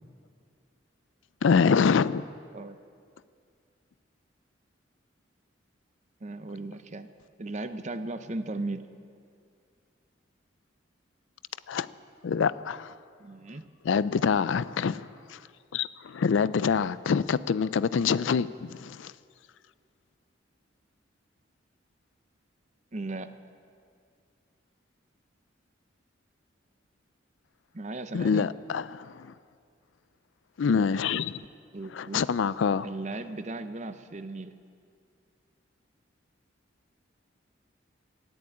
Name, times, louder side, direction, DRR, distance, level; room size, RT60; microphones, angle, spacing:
voice 1, 1.4-2.2 11.7-11.9 12.2-12.9 13.9-15.4 15.7-19.1 28.1-29.3 30.6-31.4 32.0-32.9, left 6 dB, 75° left, 17 dB, 0.4 m, -26 dB
voice 2, 6.2-7.1 7.4-8.9 13.2-13.7 22.9-23.4 27.7-28.5 30.7-31.0 31.7-32.2 32.8-34.6, right 2 dB, 35° right, 10 dB, 0.7 m, -37 dB
14.5 x 11.0 x 8.6 m, 2.3 s
head